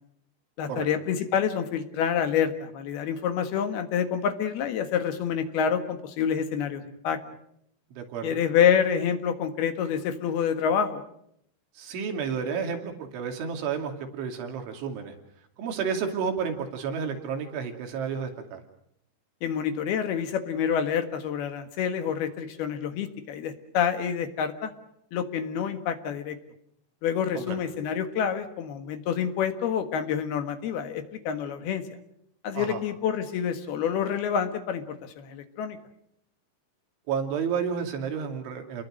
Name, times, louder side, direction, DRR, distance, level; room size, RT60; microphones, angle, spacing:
voice 1, 0.6-7.2 8.2-11.0 19.4-24.7 25.1-26.4 27.0-31.8 32.4-35.8, left 8 dB, 65° left, 8 dB, 3.2 m, -27 dB
voice 2, 7.9-8.4 11.8-15.1 15.6-18.6 27.3-27.6 32.5-32.8 37.1-38.8, right 6 dB, 75° right, 4 dB, 5.1 m, -31 dB
29.0 x 21.5 x 6.4 m, 0.72 s
omnidirectional pair, 5.5 m